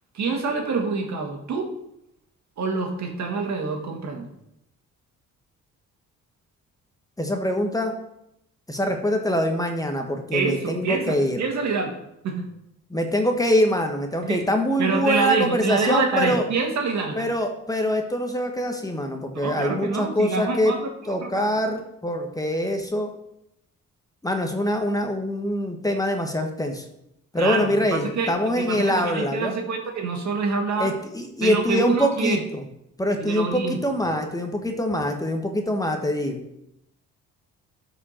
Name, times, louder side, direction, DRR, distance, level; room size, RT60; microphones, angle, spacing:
voice 1, 0.1-1.7 2.6-4.3 10.3-12.0 12.2-12.5 14.2-14.4 14.8-17.3 19.3-21.5 27.4-30.9 31.4-32.4 33.2-33.8, right 4 dB, 65° right, 3 dB, 1.9 m, -26 dB
voice 2, 7.2-7.9 8.7-11.4 12.9-16.4 17.2-20.7 21.1-23.1 24.2-26.8 27.3-29.5 30.8-32.6 33.0-36.4, equal, 10° left, 4 dB, 1.3 m, -24 dB
12.5 x 5.0 x 4.4 m, 0.80 s
cardioid pair, 90°, 30 cm